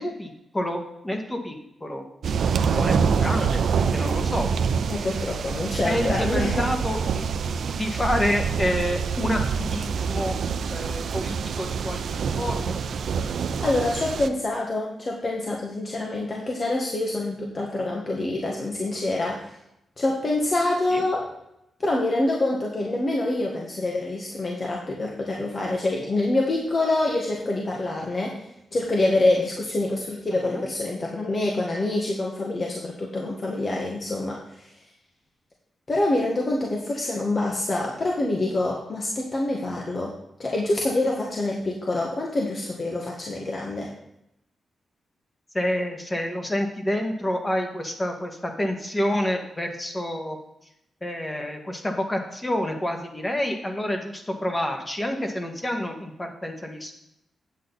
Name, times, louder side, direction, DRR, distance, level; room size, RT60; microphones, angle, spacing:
voice 1, 0.0-1.6 1.8-2.0 2.8-4.5 5.8-7.2 7.8-10.4 10.7-12.8 20.9-21.0 30.4-30.6 45.5-50.4 51.0-56.9, left 1 dB, 20° left, 3 dB, 1.8 m, -28 dB
sound 1, 2.2-14.3, right 6 dB, 75° right, 0.6 m, -26 dB
voice 2, 4.9-6.7 13.6-19.5 20.0-21.3 21.8-28.4 28.7-34.7 35.9-40.1 40.4-43.9, left 2 dB, 40° left, -1 dB, 1.7 m, -26 dB
9.3 x 7.8 x 4.1 m, 0.82 s
cardioid pair, 80°, 0 cm